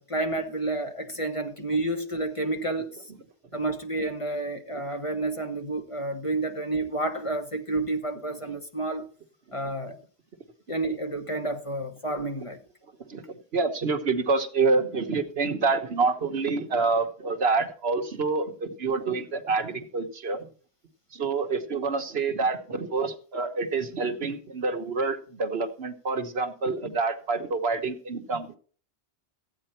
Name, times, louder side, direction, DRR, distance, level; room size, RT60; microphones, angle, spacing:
voice 1, 0.0-2.9 3.5-9.0 9.5-10.0 10.7-12.6, right 2 dB, 30° left, 1.2 m, -30 dB
voice 2, 13.1-20.5 21.1-28.5, right 4 dB, 65° right, 1.4 m, -27 dB
14.5 x 8.9 x 4.3 m
omnidirectional pair, 1.1 m